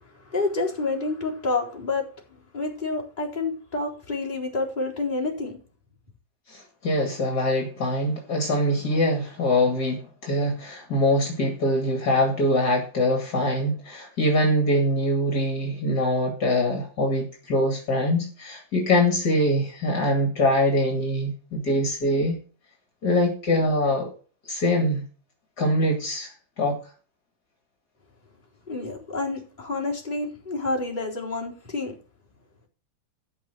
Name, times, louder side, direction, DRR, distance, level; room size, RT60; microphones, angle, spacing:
voice 1, 0.3-2.1 2.5-5.6 28.7-31.9, left 3 dB, 25° left, 4.2 m, -28 dB
voice 2, 6.5-22.4 23.0-24.1 24.4-25.0 25.6-26.8, left 1 dB, 60° left, 2.9 m, -23 dB
13.5 x 5.6 x 6.7 m
omnidirectional pair, 2.0 m